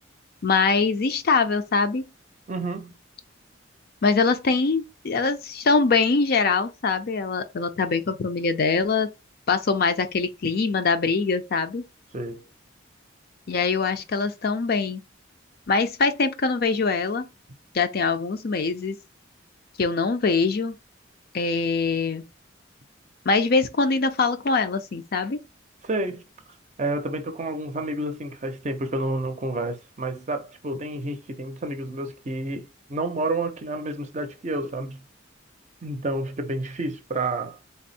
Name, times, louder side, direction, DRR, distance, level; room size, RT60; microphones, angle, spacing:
voice 1, 0.4-2.0 4.0-9.1 9.5-11.8 13.5-15.0 15.7-17.3 17.7-19.0 19.8-20.8 21.3-22.2 23.3-25.4, left 4 dB, 50° left, 0.5 m, -23 dB
voice 2, 2.5-3.0 12.1-12.5 25.8-26.2 26.8-35.0 35.8-37.6, right 2 dB, 35° right, 0.6 m, -30 dB
3.4 x 2.0 x 4.1 m
head